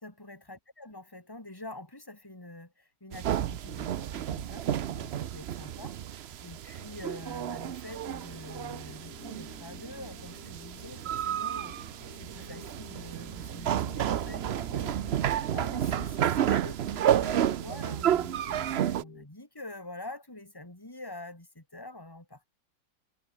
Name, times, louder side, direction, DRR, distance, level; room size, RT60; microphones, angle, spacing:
voice 1, 0.0-22.5, left 2 dB, 10° left, 3.7 m, -46 dB
sound 1, 3.1-19.0, right 10 dB, 65° right, 0.6 m, -31 dB
sound 2, 7.9-19.3, left 5 dB, 55° left, 2.4 m, -52 dB
omnidirectional pair, 1.8 m